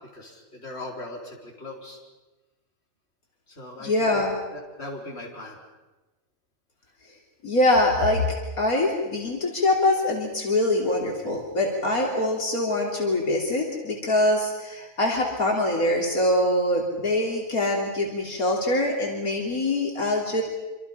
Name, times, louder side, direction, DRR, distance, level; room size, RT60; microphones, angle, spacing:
voice 1, 0.0-2.0 3.5-4.2 4.5-5.6, left 2 dB, 45° left, -1 dB, 4.7 m, -39 dB
voice 2, 3.8-4.3 7.4-8.2 8.6-20.4, left 1 dB, 75° left, -1 dB, 3.7 m, -24 dB
27.0 x 26.0 x 5.7 m, 1.2 s
omnidirectional pair, 1.5 m